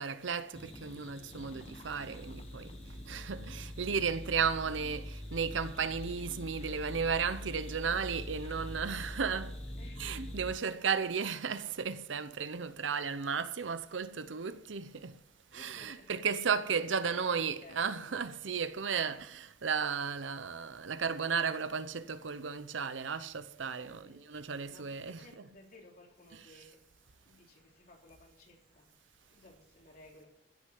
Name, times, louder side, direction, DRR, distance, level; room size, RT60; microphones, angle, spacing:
voice 1, 0.0-2.7 3.1-9.6 10.0-15.1 15.5-25.2, right 6 dB, 80° right, 0.8 m, -34 dB
sound 1, 0.5-10.5, left 1 dB, 35° left, 1.2 m, -44 dB
voice 2, 9.0-9.5 9.8-10.1 10.7-10.8 15.5-16.1 17.2-18.2 19.0-19.2 23.7-24.2 24.7-26.8 27.3-28.9 29.3-30.3, left 2 dB, 50° left, 3.5 m, -58 dB
15.5 x 6.5 x 7.7 m
head